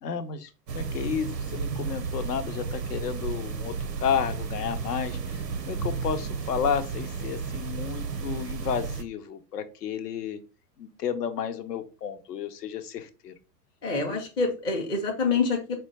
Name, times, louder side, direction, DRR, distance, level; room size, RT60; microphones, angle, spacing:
voice 1, 0.0-10.4 10.8-13.3, left 8 dB, 70° left, 10 dB, 0.7 m, -32 dB
sound 1, 0.7-9.0, right 5 dB, 90° right, 0.6 m, -33 dB
voice 2, 13.8-15.8, left 4 dB, 10° left, 0 dB, 0.4 m, -26 dB
4.3 x 2.2 x 4.1 m, 0.33 s
figure-of-eight pair, 95°, 49 cm